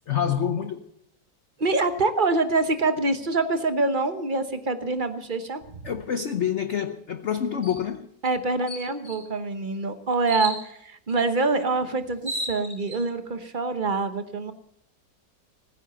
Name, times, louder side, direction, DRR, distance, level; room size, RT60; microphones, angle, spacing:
voice 1, 0.1-0.9 5.8-8.1, left 8 dB, 55° left, 0.8 m, -27 dB
voice 2, 1.6-5.8 8.2-14.5, right 3 dB, 35° right, 0.9 m, -25 dB
sound 1, 7.6-7.8 8.2-8.3 8.7-9.3 10.3-10.6 11.7-11.8 12.1-13.0, right 2 dB, 15° right, 4.9 m, -33 dB
18.0 x 9.9 x 7.0 m
omnidirectional pair, 2.0 m